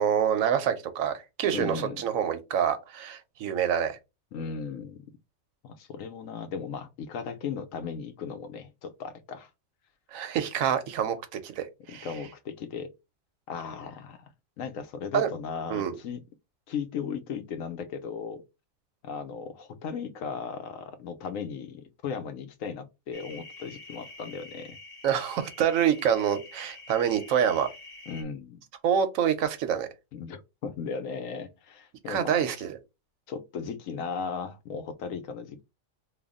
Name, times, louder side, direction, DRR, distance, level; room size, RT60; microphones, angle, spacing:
voice 1, 0.0-4.0 10.1-12.1 15.1-15.3 15.7-15.9 25.0-27.7 28.8-29.9 32.1-32.8, right 8 dB, 90° right, 1.1 m, -26 dB
voice 2, 1.5-2.0 4.3-5.0 5.6-9.5 11.9-12.9 13.5-14.3 14.6-16.2 16.7-18.4 19.0-24.8 28.1-28.6 30.1-32.4 33.3-35.6, left 6 dB, 80° left, 1.0 m, -36 dB
sound 1, 23.1-28.2, left 3 dB, 35° left, 0.9 m, -47 dB
3.4 x 2.2 x 3.5 m
omnidirectional pair, 1.4 m